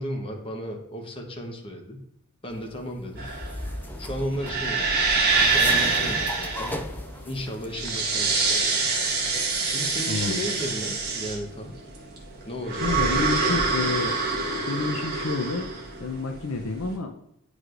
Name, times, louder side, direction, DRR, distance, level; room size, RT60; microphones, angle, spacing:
voice 1, 0.0-2.0 2.4-3.3 4.0-5.1 5.4-6.9 7.3-8.6 9.6-11.8 12.5-13.6, equal, 25° left, 2 dB, 0.9 m, -34 dB
sound 1, 2.5-7.9 8.2-8.5, left 1 dB, 10° left, 0.3 m, -37 dB
sound 2, 3.2-16.8, right 4 dB, 45° right, 1.5 m, -25 dB
voice 2, 10.0-10.4 12.8-14.2 14.7-15.7 16.0-17.1, left 3 dB, 65° left, 4 dB, 0.6 m, -29 dB
9.7 x 4.8 x 2.5 m, 0.76 s
head